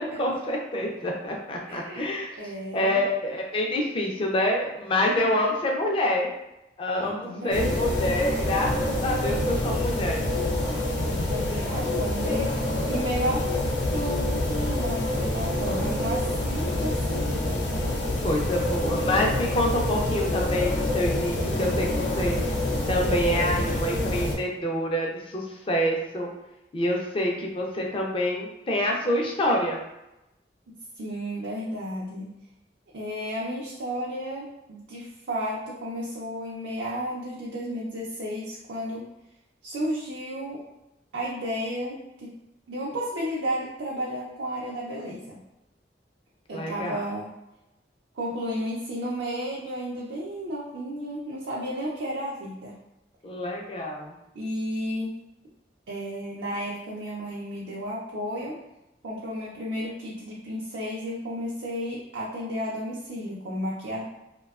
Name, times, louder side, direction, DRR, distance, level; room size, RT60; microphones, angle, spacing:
voice 1, 0.0-2.3 2.7-6.3 6.8-10.3 18.2-22.6 22.9-26.3 26.7-29.8 46.5-47.0 53.2-54.1, left 1 dB, 30° left, 0 dB, 0.4 m, -27 dB
voice 2, 1.7-2.1 2.4-3.0 7.0-7.7 11.0-13.5 13.9-17.6 31.0-32.3 32.9-39.1 39.6-40.6 41.1-42.3 42.7-45.4 46.5-47.3 48.1-52.8 54.3-55.2 55.9-58.6 59.0-64.0, equal, 80° right, -5 dB, 0.5 m, -33 dB
sound 1, 7.5-24.4, left 1 dB, 80° left, 0.5 m, -27 dB
2.6 x 2.2 x 2.3 m, 0.93 s
head